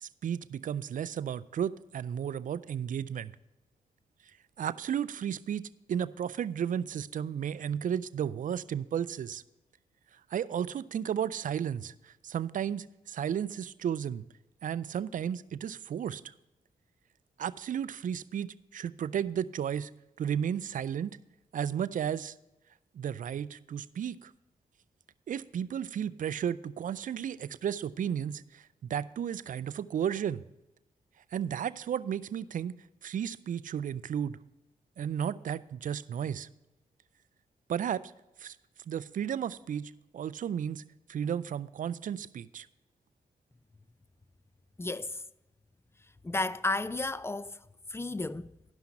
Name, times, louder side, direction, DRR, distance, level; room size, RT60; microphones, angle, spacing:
voice 1, 0.0-3.3 4.6-9.4 10.3-14.2 14.6-16.3 17.4-19.9 20.2-21.1 21.5-22.3 22.9-24.3 25.3-30.4 31.3-34.4 35.0-36.5 37.7-38.1 38.4-38.6 38.9-40.8 41.1-42.7, right 9 dB, 60° right, 0.4 m, -33 dB
voice 2, 44.8-45.2 46.2-47.6 47.9-48.5, left 2 dB, 15° left, 0.5 m, -32 dB
11.5 x 5.7 x 5.8 m
supercardioid pair, 45°, 15 cm